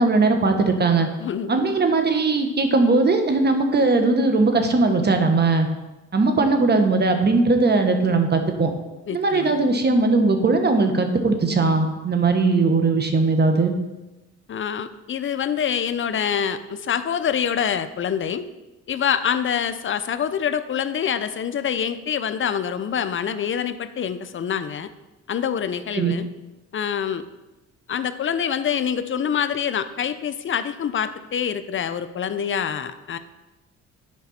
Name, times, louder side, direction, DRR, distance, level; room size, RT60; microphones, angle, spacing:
voice 1, 0.0-1.1 1.5-5.7 6.1-8.7 9.1-13.7 25.9-26.1, right 3 dB, 35° right, 6 dB, 1.2 m, -19 dB
voice 2, 1.2-1.6 9.1-9.6 14.5-18.5 18.9-24.9 25.3-26.3 26.7-27.2 27.9-33.2, left 8 dB, 40° left, 11 dB, 0.6 m, -26 dB
10.5 x 5.2 x 4.2 m, 1.1 s
cardioid pair, 90°, 30 cm